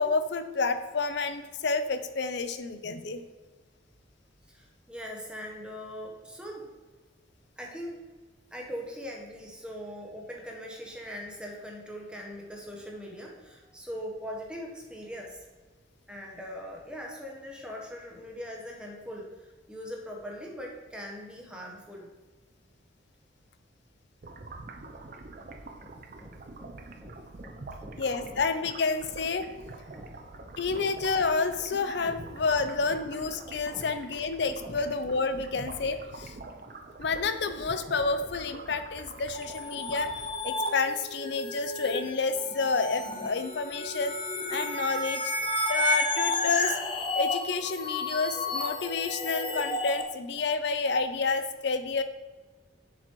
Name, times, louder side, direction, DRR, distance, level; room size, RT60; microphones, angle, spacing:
voice 1, 0.0-3.2 28.0-29.5 30.6-36.3 37.0-40.1 40.4-44.1 44.5-46.8 47.1-52.0, left 4 dB, 60° left, 10 dB, 0.5 m, -29 dB
voice 2, 4.5-6.7 7.6-8.0 8.5-15.4 16.1-22.1 25.0-25.1 25.4-28.3 28.6-28.7 29.9-30.9 32.0-32.2 32.9-33.0 33.7-33.9 34.6-34.8 35.5-35.6, equal, 5° right, -1 dB, 0.9 m, -42 dB
sound 1, 24.2-40.6, right 2 dB, 45° right, 0.5 m, -45 dB
sound 2, 39.3-50.0, left 1 dB, 25° left, 0.7 m, -32 dB
7.6 x 6.9 x 3.0 m, 1.3 s
head